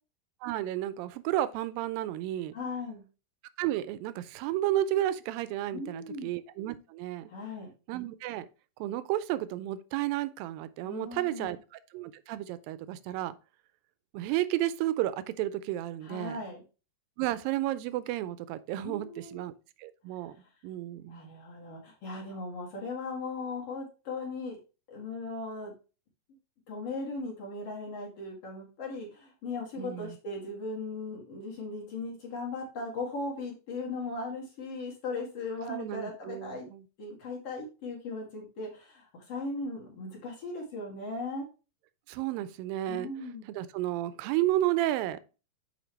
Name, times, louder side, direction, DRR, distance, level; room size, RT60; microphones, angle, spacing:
voice 1, 0.4-2.5 3.6-7.3 7.9-8.5 8.8-11.6 11.9-13.4 14.1-16.4 17.2-19.5 19.8-20.4 20.6-21.3 29.8-30.2 35.7-36.8 42.1-43.1 43.5-45.2, right 14 dB, 90° right, 2.4 m, -32 dB
voice 2, 2.5-3.0 5.7-6.3 7.3-7.7 10.8-11.5 16.0-16.6 18.8-19.4 21.1-24.6 24.9-25.7 26.7-36.7 37.0-41.4 42.9-43.5, left 3 dB, 50° left, 2.5 m, -38 dB
7.9 x 4.6 x 3.2 m
omnidirectional pair, 4.0 m